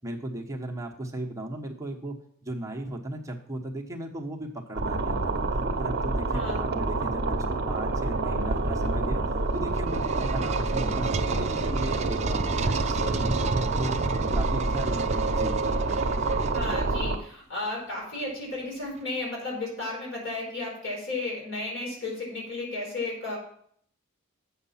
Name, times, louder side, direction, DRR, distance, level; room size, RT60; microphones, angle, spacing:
voice 1, 0.0-5.4 5.8-9.2 9.5-13.4 13.8-14.1 14.3-15.6, right 1 dB, 15° right, 0 dB, 1.1 m, -36 dB
sound 1, 4.7-17.2, right 3 dB, 50° right, 0.9 m, -28 dB
voice 2, 6.3-6.6 16.5-23.4, left 2 dB, 60° left, -3 dB, 4.5 m, -33 dB
sound 2, 9.5-17.3, right 4 dB, 30° right, 0.4 m, -32 dB
8.1 x 6.7 x 5.7 m, 0.64 s
head